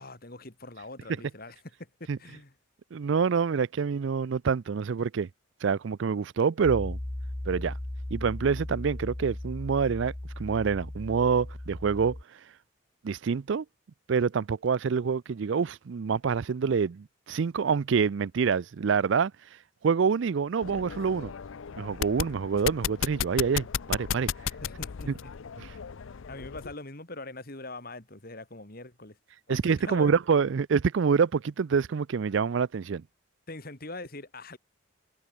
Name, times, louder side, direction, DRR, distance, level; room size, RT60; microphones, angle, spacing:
voice 1, 0.0-2.5 24.6-25.3 26.3-29.2 29.5-30.1 33.5-34.6, left 2 dB, 45° left, 2.8 m, -42 dB
voice 2, 2.9-5.3 5.6-7.0 7.5-7.7 8.1-10.1 10.4-12.2 13.0-13.6 14.1-19.3 19.8-21.3 21.8-24.3 25.1-25.2 25.6-25.7 29.5-33.0, right 6 dB, 60° right, 0.4 m, -26 dB
Piano, 6.6-12.2, left 1 dB, 10° left, 0.3 m, -37 dB
sound 1, 20.6-26.7, left 8 dB, 70° left, 0.5 m, -35 dB
head